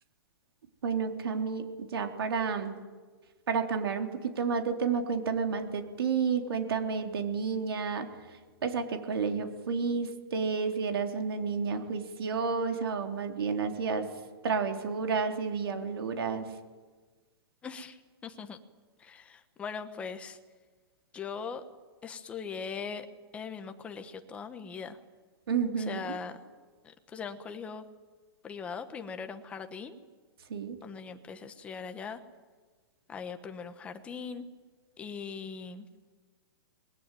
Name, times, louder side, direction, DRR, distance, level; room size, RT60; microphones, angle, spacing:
voice 1, 0.8-1.6 1.9-2.7 3.5-8.1 8.6-14.1 14.4-16.5 25.5-26.0 30.5-30.8, right 5 dB, 75° right, 5 dB, 3.6 m, -30 dB
voice 2, 17.6-18.6 19.0-20.4 21.1-21.6 22.0-23.1 23.3-25.0 25.8-26.4 26.8-27.9 28.4-29.9 30.8-32.2 33.1-34.4 35.0-35.9, left 6 dB, 10° left, 8 dB, 1.2 m, -40 dB
26.5 x 21.0 x 9.2 m, 1.4 s
hypercardioid pair, 175°, 13 cm